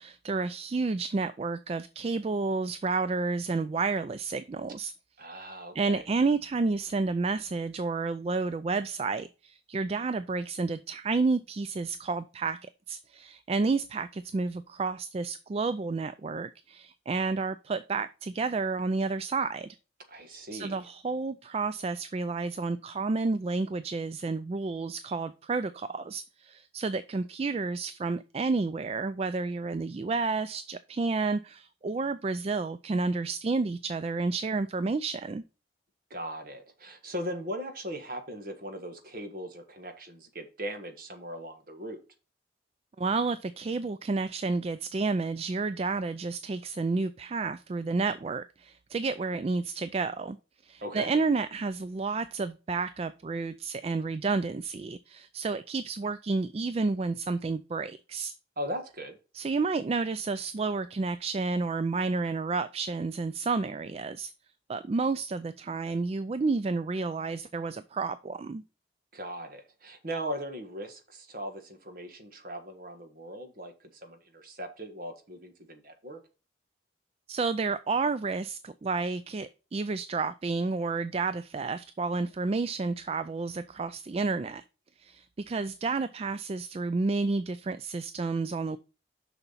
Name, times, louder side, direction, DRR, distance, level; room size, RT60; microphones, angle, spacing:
voice 1, 0.0-4.9 5.7-12.6 12.9-19.8 20.5-35.4 43.0-50.4 50.6-58.3 59.3-64.3 64.7-68.6 77.3-84.6 85.0-88.8, right 3 dB, 30° right, 0.3 m, -30 dB
voice 2, 5.2-6.0 20.1-20.8 36.1-42.0 50.8-51.2 58.6-59.2 69.1-76.2, equal, 50° right, 1.5 m, -39 dB
6.8 x 5.8 x 4.1 m
head